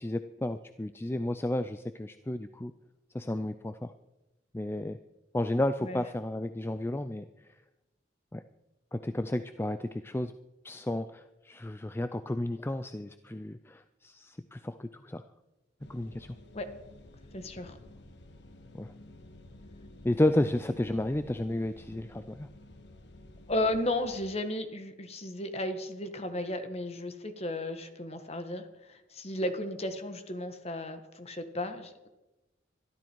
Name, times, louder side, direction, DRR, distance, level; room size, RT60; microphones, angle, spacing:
voice 1, 0.0-2.7 3.1-3.9 4.5-5.0 5.3-7.3 8.3-8.4 8.9-10.3 10.6-15.2 15.9-16.4 18.7-18.9 20.0-22.5, left 1 dB, 15° left, 11 dB, 0.4 m, -32 dB
sound 1, 15.8-24.2, left 1 dB, 70° left, 1.3 m, -52 dB
voice 2, 17.3-17.8 23.5-32.1, left 1 dB, 35° left, 8 dB, 1.6 m, -34 dB
22.0 x 13.0 x 4.6 m, 1.0 s
head